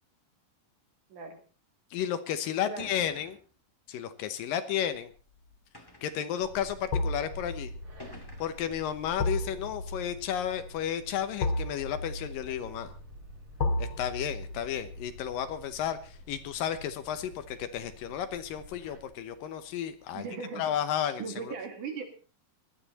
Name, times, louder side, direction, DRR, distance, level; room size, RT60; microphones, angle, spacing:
voice 1, 1.9-3.4 3.9-5.1 6.0-7.7 8.4-12.9 13.8-20.3 20.6-21.5, left 9 dB, 75° left, 10 dB, 2.6 m, -33 dB
sound 1, 2.8-3.6 4.5-4.6 5.7-6.3 7.2-7.3 8.0-8.7, left 2 dB, 10° left, 1.5 m, -50 dB
sound 2, 5.1-5.5 6.9-17.9 18.2-18.4, left 2 dB, 50° left, 2.6 m, -35 dB
sound 3, 6.4-19.1, right 1 dB, 35° right, 4.1 m, -51 dB
voice 2, 20.1-20.6 20.9-22.0, right 5 dB, 60° right, 4 dB, 3.7 m, -38 dB
19.0 x 12.5 x 4.1 m, 0.37 s
omnidirectional pair, 4.2 m